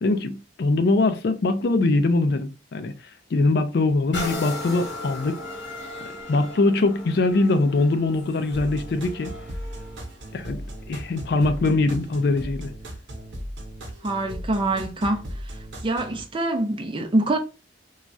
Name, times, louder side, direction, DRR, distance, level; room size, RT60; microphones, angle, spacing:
voice 1, 0.0-2.9 3.3-5.4 6.3-9.3 10.3-10.6 10.9-12.7, left 2 dB, 60° left, 0.4 m, -22 dB
sound 1, 4.1-11.7 12.3-12.4, left 2 dB, 80° left, 0.9 m, -37 dB
sound 2, 8.5-16.2, equal, 80° right, 0.8 m, -37 dB
voice 2, 14.0-15.2 15.8-17.4, right 2 dB, 25° right, 0.5 m, -24 dB
3.1 x 2.3 x 2.6 m
head